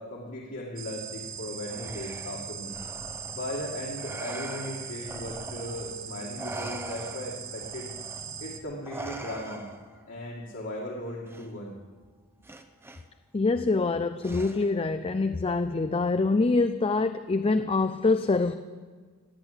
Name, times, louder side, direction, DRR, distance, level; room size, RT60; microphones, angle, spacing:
voice 1, 0.0-2.8 3.3-7.9 8.2-9.7 10.1-11.8, left 1 dB, 55° left, -3 dB, 2.2 m, -37 dB
sound 1, 0.8-8.6, right 7 dB, 60° right, 1.3 m, -40 dB
Respiratory sounds, 1.7-6.0 6.4-10.0 11.3-11.5 12.4-13.0 14.2-14.9, right 2 dB, 10° right, 0.8 m, -42 dB
voice 2, 13.3-18.5, left 3 dB, 25° left, 10 dB, 0.4 m, -25 dB
16.5 x 8.9 x 9.6 m, 1.5 s
head